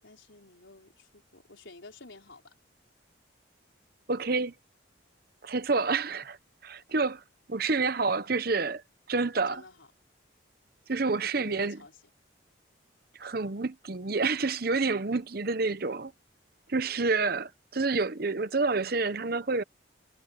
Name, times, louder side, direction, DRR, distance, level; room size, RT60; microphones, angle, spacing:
voice 1, 0.0-2.5 6.8-6.9 9.5-9.9 11.2-12.0, left 2 dB, 75° left, 4.4 m, -51 dB
voice 2, 4.1-4.5 5.4-6.4 6.6-7.2 7.5-8.8 9.1-9.6 10.9-11.8 13.2-16.1 16.7-19.6, right 3 dB, 50° right, 0.9 m, -28 dB
head